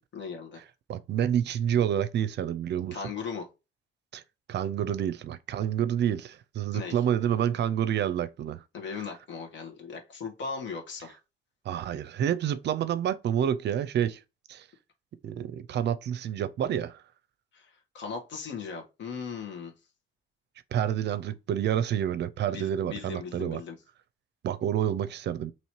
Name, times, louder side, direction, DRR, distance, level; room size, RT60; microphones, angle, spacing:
voice 1, 0.1-0.6 2.9-3.5 6.7-7.0 8.7-11.2 17.5-19.7 22.5-23.8, left 5 dB, 65° left, 1.4 m, -38 dB
voice 2, 0.9-3.0 4.1-4.2 4.5-8.6 11.7-14.2 14.5-14.6 15.2-17.0 20.7-23.6 24.4-25.5, right 9 dB, 60° right, 0.5 m, -28 dB
3.0 x 2.8 x 4.6 m
cardioid pair, 90°, 20 cm